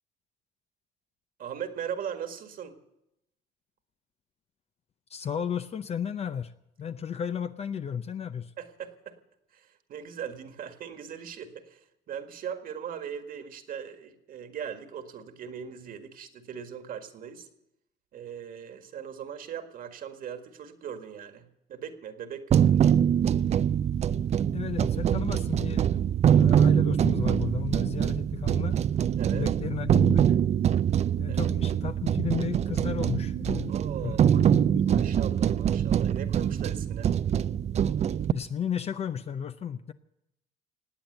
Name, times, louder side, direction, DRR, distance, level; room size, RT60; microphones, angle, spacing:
voice 1, 1.4-2.8 8.6-9.2 9.5-17.5 18.1-23.0 29.2-29.5 31.3-31.5 33.7-34.4 34.9-37.2, right 8 dB, 60° right, 7 dB, 1.9 m, -39 dB
voice 2, 5.1-6.5 6.8-8.5 24.5-26.0 26.3-28.8 29.3-30.4 31.2-33.7 34.0-35.0 38.3-39.9, left 8 dB, 40° left, 10 dB, 0.6 m, -34 dB
sound 1, 22.5-38.3, right 9 dB, 40° right, 0.5 m, -24 dB
18.5 x 8.8 x 8.0 m, 0.84 s
cardioid pair, 110°, 17 cm